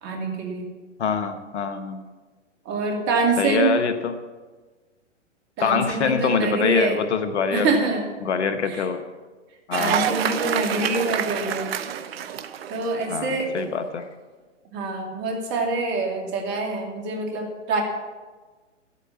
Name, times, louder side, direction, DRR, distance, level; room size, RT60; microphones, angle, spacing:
voice 1, 0.0-0.7 2.7-3.7 5.6-7.0 7.5-8.1 8.7-8.9 9.8-11.7 12.7-13.5 14.7-17.8, right 3 dB, 30° right, 2 dB, 2.4 m, -25 dB
voice 2, 1.0-2.0 3.4-4.2 5.6-7.7 8.2-9.0 9.7-10.1 13.1-14.1, left 6 dB, 65° left, 9 dB, 1.3 m, -24 dB
Cheering / Applause, 9.7-13.4, right 9 dB, 55° right, 0.8 m, -27 dB
12.0 x 8.2 x 7.2 m, 1.3 s
hypercardioid pair, 125°, 37 cm